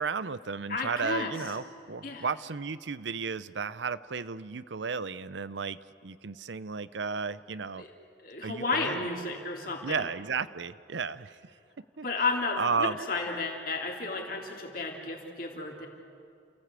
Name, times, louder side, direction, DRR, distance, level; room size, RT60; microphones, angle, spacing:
voice 1, 0.0-5.8 6.0-7.8 8.4-9.0 9.8-11.4 12.0-12.1 12.6-13.0, right 5 dB, 75° right, 16 dB, 0.7 m, -33 dB
voice 2, 0.7-1.4 2.0-2.3 7.8-7.9 8.2-10.1 12.0-15.9, left 3 dB, 50° left, 1 dB, 3.3 m, -32 dB
29.5 x 16.0 x 8.3 m, 2.5 s
head